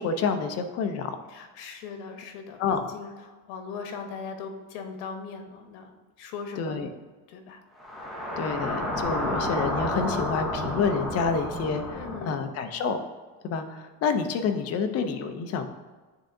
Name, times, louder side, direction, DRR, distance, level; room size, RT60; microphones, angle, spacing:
voice 1, 0.0-1.2 2.6-2.9 6.6-6.9 8.4-13.0 13.4-15.7, left 5 dB, 35° left, 7 dB, 0.5 m, -28 dB
voice 2, 1.3-6.9 7.3-7.6 11.9-12.4, left 5 dB, 80° left, 5 dB, 1.1 m, -39 dB
sound 1, 7.8-12.3, left 1 dB, ahead, 0.8 m, -30 dB
9.9 x 3.7 x 2.6 m, 1.3 s
cardioid pair, 145°, 46 cm